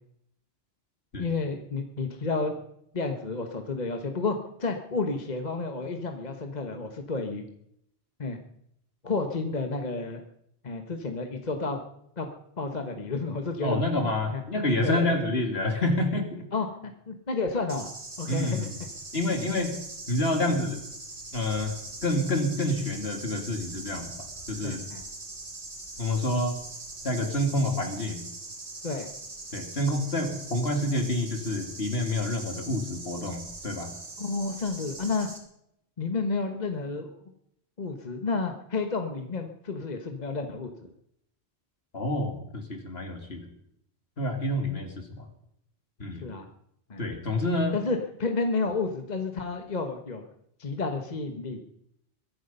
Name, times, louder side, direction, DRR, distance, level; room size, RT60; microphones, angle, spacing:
voice 1, 1.2-2.5 2.9-7.4 8.2-8.4 9.0-10.2 10.6-11.8 12.2-12.3 12.6-13.8 14.3-14.4 14.8-15.2 16.5-17.9 18.2-18.7 19.3-19.5 21.6-21.7 24.6-25.0 28.8-29.1 34.2-35.3 36.0-37.1 37.8-40.9 46.2-46.5 46.9-47.0 47.7-50.2 50.6-51.6, left 3 dB, 40° left, 5 dB, 1.3 m, -31 dB
voice 2, 13.6-16.5 18.3-18.8 19.1-19.7 20.1-20.8 21.3-21.7 22.0-24.8 26.0-26.6 27.0-28.2 29.5-33.9 41.9-43.5 44.2-45.2 46.0-46.3 47.0-47.8, left 1 dB, 60° left, 5 dB, 2.7 m, -28 dB
sound 1, 17.7-35.4, right 2 dB, 70° right, 2.9 m, -42 dB
22.5 x 11.0 x 5.5 m, 0.75 s
omnidirectional pair, 1.2 m